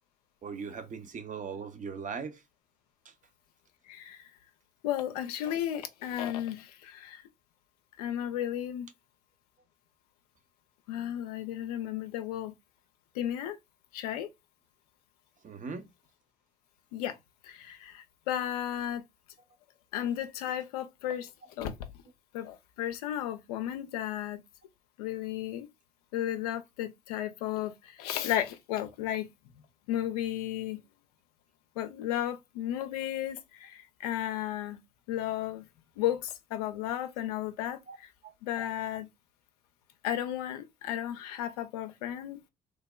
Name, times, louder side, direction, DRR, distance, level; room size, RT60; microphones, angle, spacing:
voice 1, 0.4-2.4 3.0-3.1 15.4-15.9 37.9-38.0 38.2-38.3, right 5 dB, 40° right, 0.7 m, -39 dB
voice 2, 3.9-4.2 4.8-7.2 8.0-8.9 10.9-12.5 13.2-13.6 13.9-14.3 16.9-17.2 17.4-19.0 19.9-21.3 21.6-21.7 22.3-24.4 25.0-25.7 26.1-29.3 29.9-30.8 31.8-34.8 35.1-35.6 36.0-38.1 38.4-39.1 40.0-42.4, left 11 dB, 85° left, 0.4 m, -34 dB
3.3 x 2.0 x 2.2 m
hypercardioid pair, 50°, 19 cm